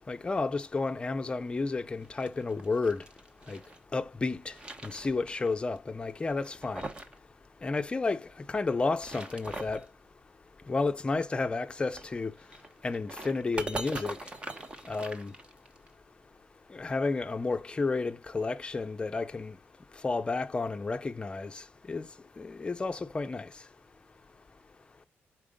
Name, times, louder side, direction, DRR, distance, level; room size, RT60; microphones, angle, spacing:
voice 1, 0.1-3.0 3.5-3.6 3.9-4.5 4.8-6.8 7.6-8.2 8.5-9.8 10.7-12.3 12.8-14.2 14.9-15.3 16.7-19.5 20.0-21.6 21.9-22.1 22.4-23.5, left 3 dB, 20° left, 0.6 m, -31 dB
sound 1, 2.0-3.8 4.2-5.5 5.8-5.9 6.4-7.2 7.4-7.5 8.8-9.9 11.8-15.9, right 2 dB, 20° right, 0.9 m, -42 dB
4.9 x 4.7 x 5.0 m
cardioid pair, 135°, 5 cm